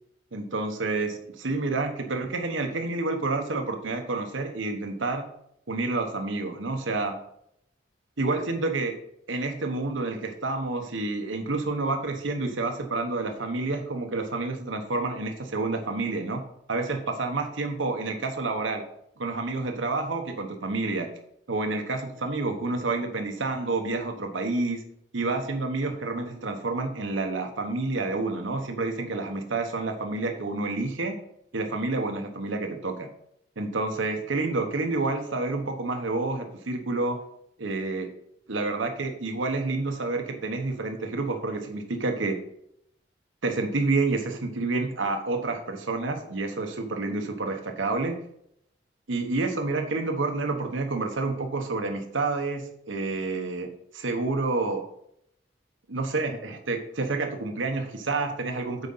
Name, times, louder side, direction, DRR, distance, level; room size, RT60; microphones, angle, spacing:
voice 1, 0.3-5.3 5.7-7.2 8.2-8.9 9.3-16.4 16.7-18.8 19.2-21.1 21.5-24.8 25.1-31.2 31.5-33.1 33.6-37.2 37.6-38.1 38.5-42.4 43.4-48.2 49.1-54.8 55.9-58.9, right 3 dB, 85° right, 4 dB, 1.1 m, -29 dB
8.1 x 4.9 x 5.6 m, 0.74 s
head